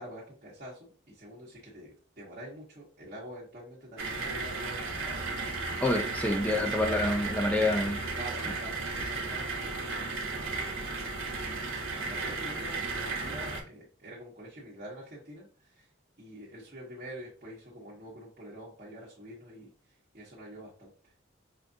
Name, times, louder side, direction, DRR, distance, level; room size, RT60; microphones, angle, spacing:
voice 1, 0.0-5.6 8.1-10.1 10.4-10.9 12.0-15.9 16.2-19.7 20.1-21.3, equal, 40° right, 1.1 m, -46 dB
sound 1, 4.0-13.6, right 3 dB, 85° right, 0.9 m, -34 dB
voice 2, 5.8-8.0, left 2 dB, 5° left, 0.5 m, -27 dB
4.9 x 2.5 x 2.6 m
head